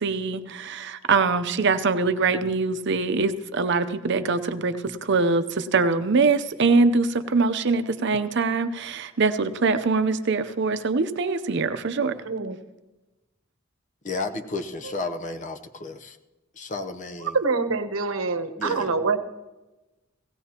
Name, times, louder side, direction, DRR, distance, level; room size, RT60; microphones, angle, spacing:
voice 1, 0.0-12.1, right 4 dB, 60° right, 10 dB, 0.7 m, -23 dB
voice 2, 12.2-12.6 17.3-19.2, right 4 dB, 80° right, 8 dB, 0.9 m, -25 dB
voice 3, 14.0-16.2 16.5-17.4 18.6-19.0, left 3 dB, 35° left, 5 dB, 0.8 m, -32 dB
17.0 x 17.0 x 2.9 m, 1.1 s
head